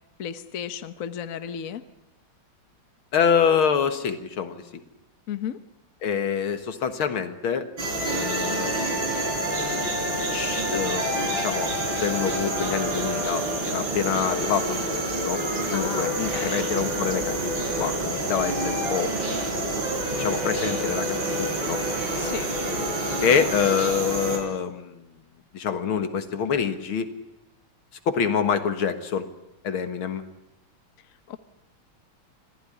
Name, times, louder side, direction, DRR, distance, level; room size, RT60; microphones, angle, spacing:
voice 1, 0.2-1.8 5.3-5.6 15.7-16.7 22.2-22.5 31.3-31.4, left 9 dB, 50° left, 11 dB, 1.3 m, -34 dB
voice 2, 3.1-4.8 6.0-7.7 8.1-8.9 10.3-15.4 15.7-19.1 20.1-21.8 23.2-25.1 25.5-27.1 28.1-29.3 29.6-30.2, left 7 dB, 80° left, 9 dB, 2.4 m, -26 dB
sound 1, 7.8-24.4, right 1 dB, 65° right, 4.9 m, -27 dB
25.5 x 16.5 x 9.9 m, 0.88 s
omnidirectional pair, 2.3 m